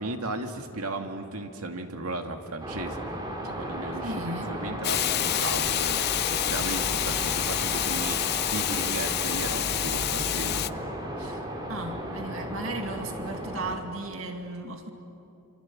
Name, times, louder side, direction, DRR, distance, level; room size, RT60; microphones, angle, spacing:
voice 1, 0.0-3.1 3.4-10.6 11.2-11.4, right 2 dB, 85° right, 4 dB, 2.3 m, -35 dB
sound 1, 2.6-13.8, right 1 dB, 20° right, 3.2 m, -35 dB
voice 2, 4.0-4.5 11.7-14.9, right 2 dB, 65° right, 4 dB, 2.3 m, -35 dB
Hiss, 4.8-10.7, left 13 dB, 45° left, 0.5 m, -28 dB
26.5 x 26.5 x 7.6 m, 2.9 s
head